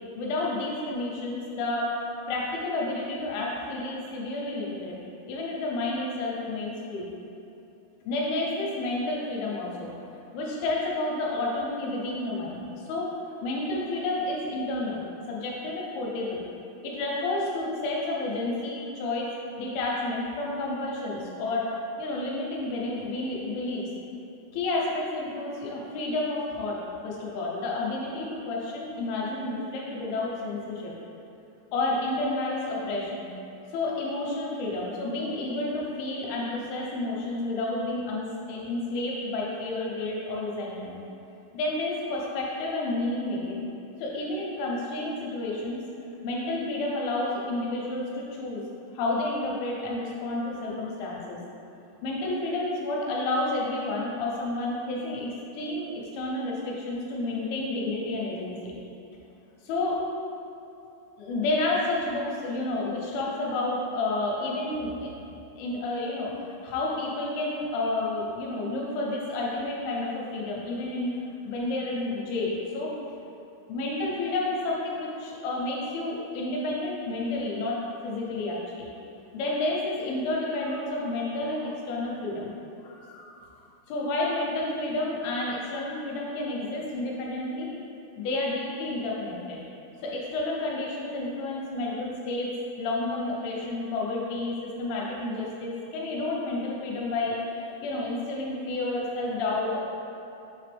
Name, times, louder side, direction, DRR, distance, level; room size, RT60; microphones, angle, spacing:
voice 1, 0.1-1.9 2.3-5.0 5.3-7.1 8.1-16.4 16.8-19.3 19.6-23.8 24.5-30.9 31.7-33.3 33.7-41.0 41.5-43.6 44.0-45.8 46.2-48.6 48.9-51.4 52.0-58.7 59.6-60.0 61.2-65.1 65.5-71.1 71.4-72.9 73.7-78.9 79.3-82.5 82.8-83.4 83.9-87.7 88.2-89.6 90.0-99.8, left 2 dB, 80° left, -3 dB, 3.1 m, -30 dB
7.1 x 4.1 x 3.4 m, 2.8 s
omnidirectional pair, 5.9 m